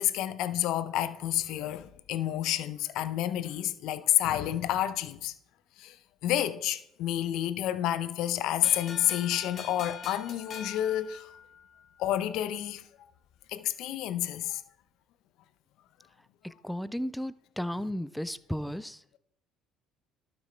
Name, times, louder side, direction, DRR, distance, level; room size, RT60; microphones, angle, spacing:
voice 1, 0.0-5.3 5.8-6.0 6.2-11.3 12.0-12.8 13.5-14.6, left 12 dB, 70° left, 0.6 m, -29 dB
sound 1, 8.6-11.9, left 7 dB, 55° left, 1.4 m, -43 dB
voice 2, 16.4-19.0, equal, 5° left, 0.4 m, -34 dB
12.0 x 6.1 x 3.3 m
supercardioid pair, 75°, 0 cm